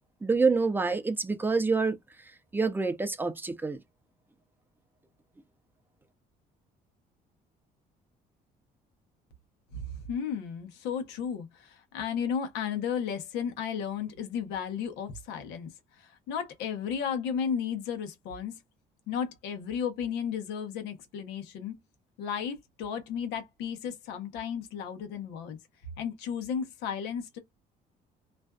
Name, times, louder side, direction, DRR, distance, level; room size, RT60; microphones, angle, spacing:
voice 1, 0.2-2.0 2.5-3.8, right 4 dB, 10° right, 0.5 m, -27 dB
voice 2, 9.7-15.7 16.0-18.6 19.1-21.8 22.2-25.6 26.0-27.4, left 7 dB, 90° left, 0.8 m, -34 dB
2.5 x 2.2 x 2.2 m
cardioid pair, 110°, 17 cm